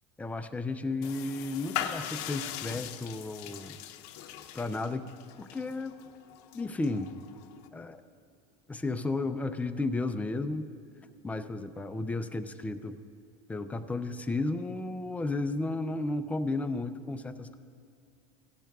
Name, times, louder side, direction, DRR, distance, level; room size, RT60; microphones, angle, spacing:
voice 1, 0.2-3.8 4.5-5.1 5.4-5.9 6.5-7.2 7.7-8.0 8.7-10.7 11.2-13.0 13.5-17.6, left 2 dB, 5° left, 9 dB, 0.3 m, -33 dB
sound 1, 1.0-7.7, left 10 dB, 80° left, 0.7 m, -40 dB
17.0 x 12.0 x 2.3 m, 2.5 s
cardioid pair, 145°, 20 cm